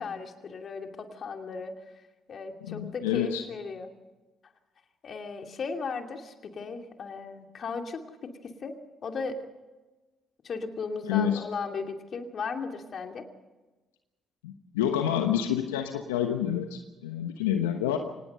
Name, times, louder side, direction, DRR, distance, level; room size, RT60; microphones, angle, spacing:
voice 1, 0.0-1.7 2.3-3.9 5.0-8.8 9.0-9.4 10.4-13.3, left 4 dB, 55° left, 5 dB, 2.7 m, -36 dB
voice 2, 2.7-3.4 11.0-11.4 14.4-18.0, left 10 dB, 90° left, 6 dB, 1.1 m, -28 dB
25.0 x 19.0 x 5.6 m, 1.2 s
hypercardioid pair, 50°, 0 cm